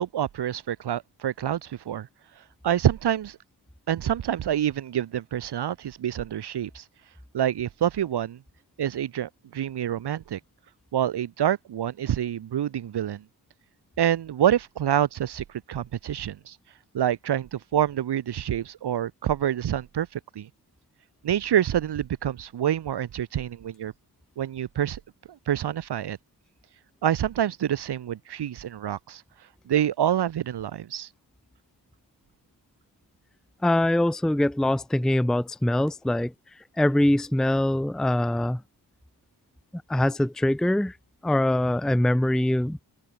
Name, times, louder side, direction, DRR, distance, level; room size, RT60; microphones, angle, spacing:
voice 1, 0.0-2.1 2.6-3.4 3.9-6.8 7.3-8.4 8.8-10.4 10.9-13.2 14.0-16.6 16.9-20.5 21.2-23.9 24.4-25.0 25.5-26.2 27.0-29.2 29.7-31.1, right 10 dB, 80° right, 1.3 m, -27 dB
voice 2, 33.6-36.3 36.8-38.6 39.9-40.9 41.2-42.8, left 1 dB, ahead, 0.6 m, -23 dB
open air
cardioid pair, 90°, 39 cm